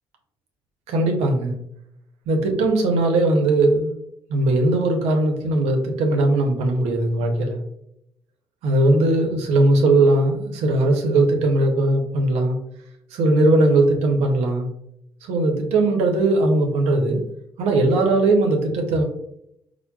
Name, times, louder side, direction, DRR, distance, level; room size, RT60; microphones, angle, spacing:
voice 1, 0.9-1.5 2.3-3.9 4.3-7.6 8.6-12.6 13.1-14.7 15.2-17.2 17.6-19.0, right 2 dB, 75° right, 3 dB, 0.7 m, -19 dB
4.4 x 2.1 x 2.2 m, 0.76 s
hypercardioid pair, 55°, 11 cm